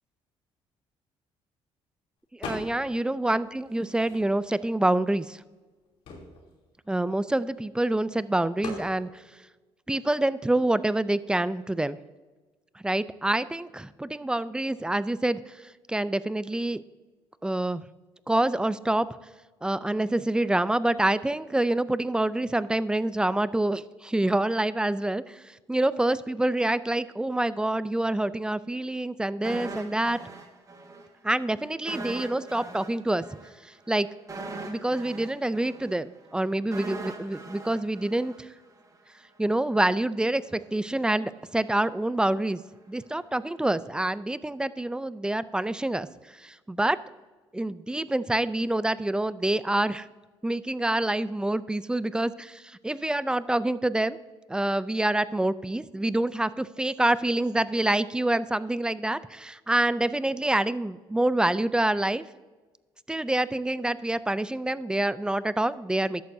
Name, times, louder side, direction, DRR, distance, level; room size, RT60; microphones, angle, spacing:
voice 1, 2.3-5.4 6.9-9.2 9.9-12.0 12.8-15.5 15.9-16.8 17.4-17.8 18.3-19.1 19.6-30.2 31.2-33.2 33.6-34.1 34.6-38.5 39.4-42.6 42.9-46.1 46.4-47.0 47.5-50.1 50.4-54.2 54.5-62.2 63.1-66.2, right 1 dB, 10° right, 16 dB, 0.4 m, -26 dB
Wooden box on wooden table, 2.4-3.0 3.3-4.6 5.2-5.3 5.5-7.8 8.6-8.9, left 3 dB, 80° left, 3.0 m, -41 dB
sound 1, 29.4-31.1 31.3-31.5 31.9-38.9 39.2-39.4, right 3 dB, 35° right, 1.5 m, -40 dB
14.0 x 11.0 x 2.7 m, 1.3 s
cardioid pair, 95°, 10 cm